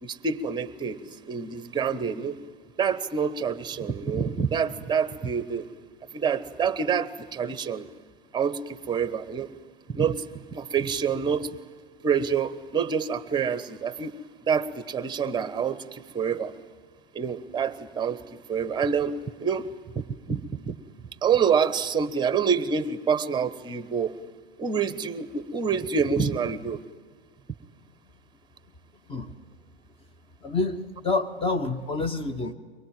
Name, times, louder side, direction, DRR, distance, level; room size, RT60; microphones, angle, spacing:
voice 1, 0.0-2.4 2.8-5.7 6.1-7.9 8.3-9.5 9.9-11.6 12.0-14.2 14.5-16.5 17.1-18.2 18.5-20.8 21.2-24.2 24.6-26.8, right 6 dB, 15° right, 14 dB, 1.1 m, -27 dB
voice 2, 30.4-32.5, left 3 dB, 15° left, 9 dB, 1.2 m, -28 dB
23.5 x 21.5 x 9.0 m, 1.5 s
figure-of-eight pair, 100°, 31 cm